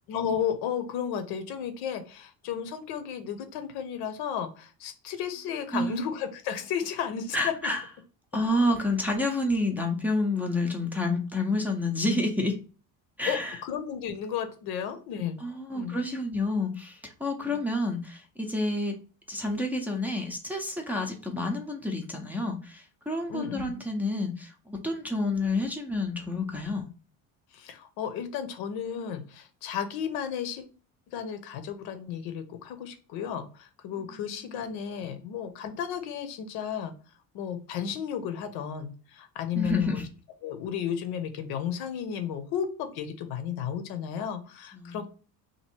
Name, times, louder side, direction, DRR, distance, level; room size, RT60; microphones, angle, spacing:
voice 1, 0.1-7.5 13.3-15.4 15.7-16.1 17.4-17.6 23.3-23.7 27.5-30.7 31.1-36.9 37.3-40.0 40.4-45.1, left 8 dB, 80° left, 8 dB, 0.8 m, -33 dB
voice 2, 7.3-7.8 8.3-12.6 13.2-13.6 15.4-19.0 19.3-26.8 39.6-40.1 44.7-45.0, left 2 dB, 5° right, 0 dB, 0.5 m, -29 dB
3.0 x 2.6 x 4.3 m, 0.37 s
cardioid pair, 140°, 37 cm